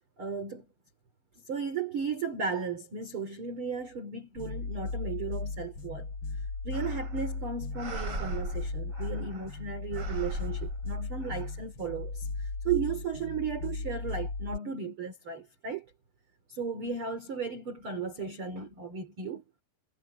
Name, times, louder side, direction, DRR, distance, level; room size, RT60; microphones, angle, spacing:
voice 1, 0.2-0.6 1.4-6.1 6.6-15.9 16.5-19.4, right 5 dB, 35° right, 3.1 m, -35 dB
sound 1, 4.4-14.6, left 3 dB, 30° left, 5.3 m, -36 dB
sound 2, 6.7-7.3 7.7-9.6 9.9-11.5, right 2 dB, 20° right, 5.7 m, -39 dB
omnidirectional pair, 4.9 m